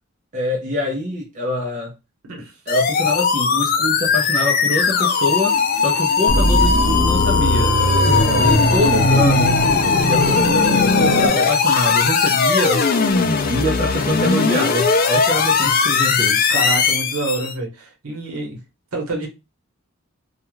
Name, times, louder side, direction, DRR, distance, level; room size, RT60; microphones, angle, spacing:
voice 1, 0.3-1.9 2.7-7.8 8.4-9.6 10.0-12.8 13.5-16.4, left 1 dB, 35° right, 0.5 m, -24 dB
sound 1, 2.7-17.5, left 5 dB, 40° left, 0.3 m, -19 dB
sound 2, 6.3-11.3, equal, 65° left, 0.9 m, -19 dB
voice 2, 8.0-8.6 16.5-18.6 18.9-19.3, right 2 dB, 85° right, 0.9 m, -27 dB
2.3 x 2.2 x 3.0 m
head